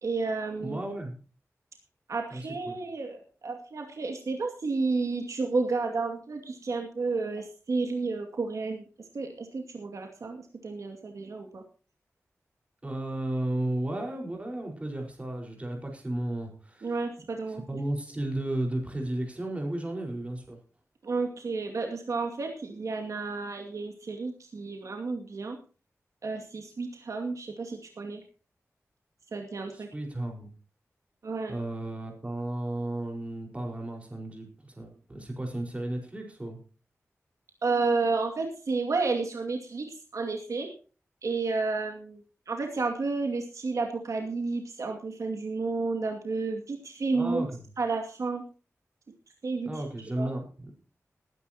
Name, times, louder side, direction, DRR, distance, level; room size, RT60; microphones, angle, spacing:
voice 1, 0.0-0.8 2.1-8.9 9.1-11.6 16.8-17.6 21.0-25.6 26.2-28.2 29.3-29.9 31.2-31.6 37.6-40.7 41.2-47.5 47.8-48.4 49.4-49.8 50.2-50.3, right 3 dB, 75° right, 2 dB, 2.4 m, -31 dB
voice 2, 0.6-1.2 2.3-2.8 12.8-16.9 17.5-20.6 29.7-30.5 31.5-36.6 47.1-47.6 49.6-50.4, right 1 dB, 25° right, 2 dB, 4.9 m, -34 dB
20.0 x 10.5 x 2.9 m, 0.36 s
wide cardioid pair, 115°, 5 cm